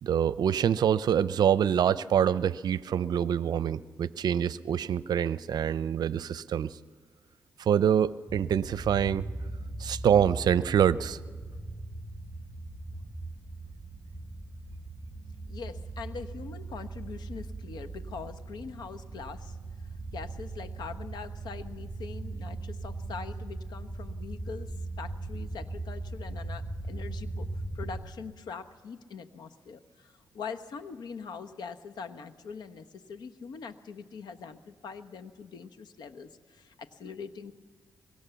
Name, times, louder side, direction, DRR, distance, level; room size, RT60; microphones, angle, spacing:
voice 1, 0.0-6.8 7.6-9.3 9.8-11.2, right 9 dB, 70° right, 16 dB, 0.6 m, -25 dB
sound 1, 8.3-28.0, right 2 dB, 10° left, 7.5 m, -39 dB
voice 2, 15.5-19.6 20.1-37.5, left 5 dB, 75° left, 10 dB, 1.1 m, -43 dB
23.5 x 22.5 x 7.0 m, 1.5 s
cardioid pair, 75°, 7 cm